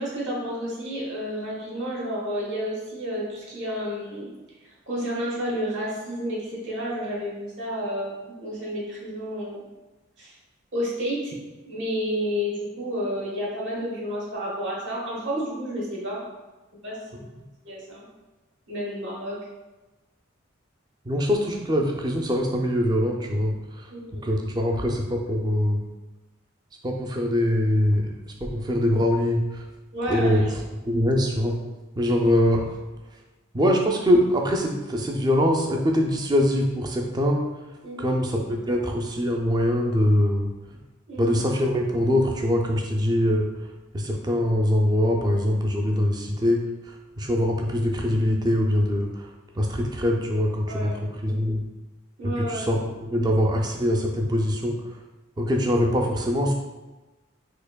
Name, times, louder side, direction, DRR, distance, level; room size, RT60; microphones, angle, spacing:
voice 1, 0.0-4.3 4.6-9.6 10.2-10.3 10.7-11.4 11.6-16.2 16.8-17.3 17.6-18.1 18.7-19.4 23.9-24.2 29.9-30.5 37.8-38.2 41.1-41.4 50.7-51.0 52.2-52.7, equal, 65° right, -4 dB, 1.1 m, -31 dB
voice 2, 21.1-23.9 24.2-25.8 26.8-29.6 30.1-30.5 30.9-31.6 32.0-32.7 33.5-37.5 38.0-40.5 41.2-43.5 43.9-46.6 46.9-49.3 49.6-50.9 51.2-51.6 52.4-54.8 55.4-56.5, equal, 20° right, 1 dB, 0.3 m, -23 dB
4.4 x 2.7 x 2.2 m, 1.1 s
head